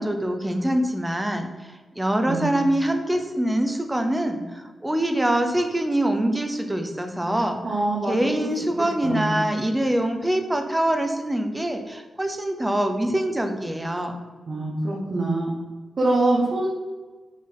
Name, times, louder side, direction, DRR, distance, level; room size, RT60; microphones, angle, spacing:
voice 1, 0.0-7.6 8.1-14.2, right 1 dB, 10° right, 5 dB, 0.7 m, -24 dB
voice 2, 7.6-8.1 9.0-9.3 14.5-15.5 16.0-16.7, right 2 dB, 45° right, -4 dB, 1.2 m, -24 dB
6.5 x 3.9 x 5.3 m, 1.3 s
wide cardioid pair, 165°, 0 cm